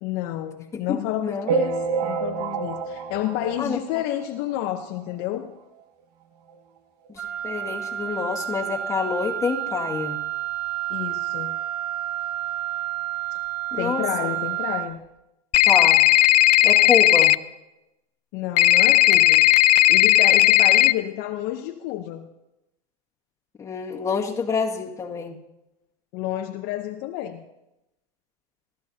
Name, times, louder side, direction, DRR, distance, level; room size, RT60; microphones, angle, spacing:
voice 1, 0.0-5.5 10.9-11.6 13.8-15.0 18.3-19.5 19.9-22.3 26.1-27.4, left 13 dB, 50° left, 5 dB, 0.8 m, -30 dB
voice 2, 0.7-1.5 3.6-3.8 7.1-10.2 13.7-14.3 15.7-16.0 16.6-17.3 23.6-25.4, left 5 dB, 15° left, -3 dB, 1.9 m, -27 dB
sound 1, 1.5-4.3 4.8-4.9 5.1-5.2 5.5-5.6 6.5-6.6 7.0-7.1, right 5 dB, 80° right, 1.3 m, -28 dB
Wind instrument woodwind instrument, 7.2-14.9, right 13 dB, 5° right, 0.6 m, -30 dB
sound 2, 15.5-17.3 18.6-20.9, left 17 dB, 85° left, 0.5 m, -16 dB
24.0 x 13.5 x 2.8 m, 0.93 s
supercardioid pair, 130°, 20 cm